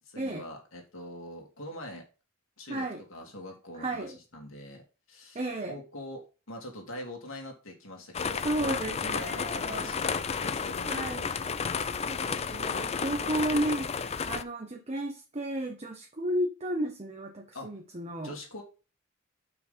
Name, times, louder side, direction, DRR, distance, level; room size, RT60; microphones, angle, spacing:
voice 1, 0.1-2.0 2.6-4.1 4.3-4.8 5.1-5.4 5.7-6.2 6.5-11.5 17.5-17.7 18.2-18.6, left 1 dB, 70° left, 1 dB, 2.7 m, -43 dB
voice 2, 2.7-3.0 3.7-4.2 5.3-5.8 8.3-10.0 10.9-11.3 12.1-18.4, right 1 dB, 30° right, 3 dB, 1.0 m, -33 dB
sound 1, 8.1-14.4, left 6 dB, 30° left, 0.4 m, -32 dB
6.2 x 5.9 x 5.2 m, 0.32 s
head